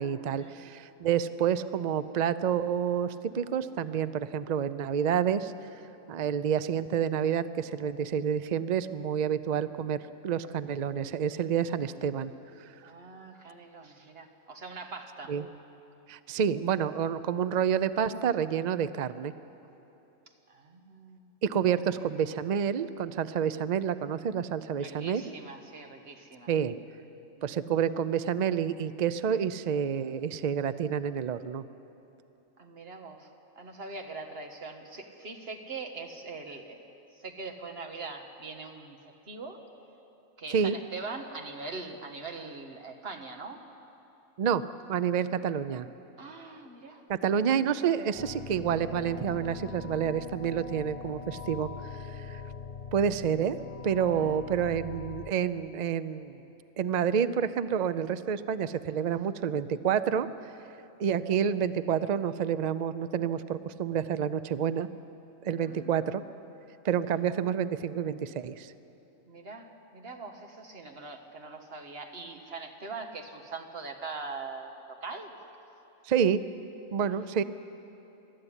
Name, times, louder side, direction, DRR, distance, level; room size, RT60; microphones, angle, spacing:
voice 1, 0.0-5.5 6.1-12.3 15.3-15.5 16.1-19.3 21.4-25.2 26.5-26.8 27.4-31.6 40.5-40.7 44.4-44.6 44.9-45.9 47.1-51.7 51.9-52.4 52.9-53.6 53.8-56.4 56.8-60.5 61.0-64.9 65.4-66.2 66.8-68.7 76.1-76.4 76.9-77.4, right 8 dB, 85° right, 13 dB, 0.3 m, -29 dB
voice 2, 12.8-15.3 20.5-21.3 24.8-26.5 27.4-27.6 32.6-33.3 33.5-39.0 39.3-39.6 40.4-43.6 46.2-47.0 54.1-54.4 65.6-66.0 69.3-75.3 77.0-77.3, right 3 dB, 45° right, 4 dB, 1.7 m, -42 dB
sound 1, 48.2-55.3, left 6 dB, 45° left, 0.5 m, -42 dB
22.5 x 13.5 x 9.9 m, 3.0 s
omnidirectional pair, 1.5 m